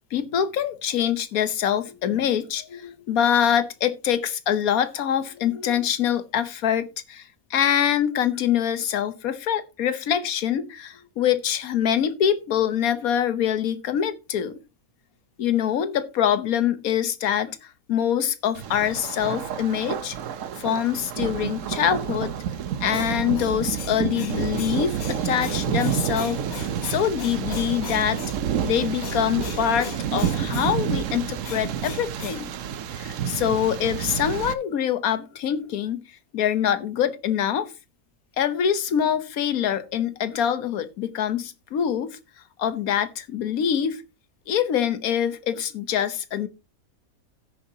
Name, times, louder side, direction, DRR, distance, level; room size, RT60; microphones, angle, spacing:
voice 1, 0.1-14.6 15.4-20.1 20.6-22.3 22.8-28.4 28.6-32.5 32.9-36.0 36.3-37.7 38.4-42.1 42.6-44.0 44.5-46.5, left 9 dB, 80° left, 1.4 m, -24 dB
Thunder, 18.5-34.5, right 9 dB, 65° right, 1.1 m, -29 dB
16.0 x 6.9 x 2.8 m
omnidirectional pair, 1.5 m